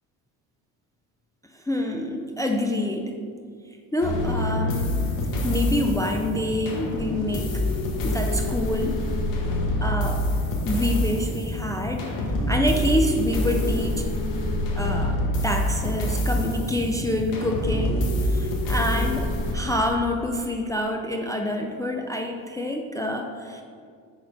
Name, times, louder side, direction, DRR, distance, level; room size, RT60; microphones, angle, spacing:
voice 1, 1.5-3.2 3.9-5.1 5.4-7.5 8.0-9.0 9.8-10.3 10.6-12.1 12.5-14.1 14.8-15.2 15.4-23.6, left 1 dB, 10° left, 2 dB, 0.4 m, -27 dB
sound 1, 4.0-19.5, left 1 dB, 85° left, 1.3 m, -26 dB
5.8 x 4.4 x 5.0 m, 2.2 s
supercardioid pair, 85°, 44 cm